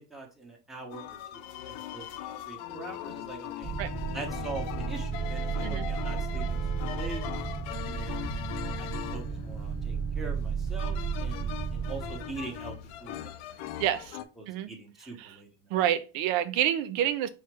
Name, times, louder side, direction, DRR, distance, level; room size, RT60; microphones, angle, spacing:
voice 1, 0.1-3.7 4.1-7.2 7.8-8.3 8.8-13.6 14.4-15.5, right 3 dB, ahead, 1.0 m, -43 dB
sound 1, 0.9-14.2, left 11 dB, 85° left, 0.7 m, -40 dB
sound 2, 3.6-13.2, right 6 dB, 25° right, 1.3 m, -33 dB
voice 2, 13.8-14.2 14.5-14.7 15.0-15.4 15.7-17.3, right 11 dB, 75° right, 0.6 m, -28 dB
4.5 x 2.1 x 4.6 m
cardioid pair, 135°, 50 cm